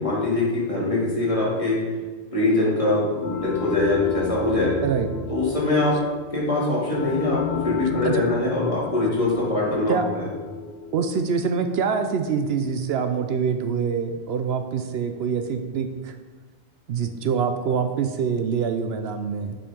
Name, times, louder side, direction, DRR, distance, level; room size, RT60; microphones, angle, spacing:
voice 1, 0.0-1.8 2.3-4.8 5.3-6.0 6.3-10.2, left 2 dB, 30° left, -7 dB, 2.6 m, -23 dB
sound 1, 3.2-13.6, left 7 dB, 70° left, 0.8 m, -36 dB
voice 2, 4.8-5.1 8.0-8.2 9.9-10.1 10.9-16.2 16.9-19.6, right 6 dB, 75° right, 7 dB, 0.8 m, -25 dB
7.1 x 5.3 x 5.1 m, 1.4 s
omnidirectional pair, 1.1 m